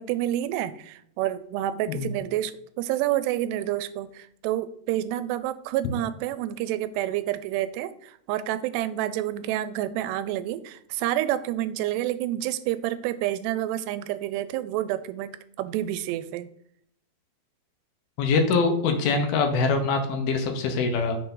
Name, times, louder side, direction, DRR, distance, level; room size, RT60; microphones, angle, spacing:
voice 1, 0.0-2.5 2.8-16.5, right 13 dB, 90° right, 14 dB, 2.7 m, -29 dB
voice 2, 18.2-21.2, left 4 dB, 75° left, 4 dB, 2.6 m, -24 dB
6.4 x 4.7 x 3.8 m, 0.70 s
omnidirectional pair, 4.7 m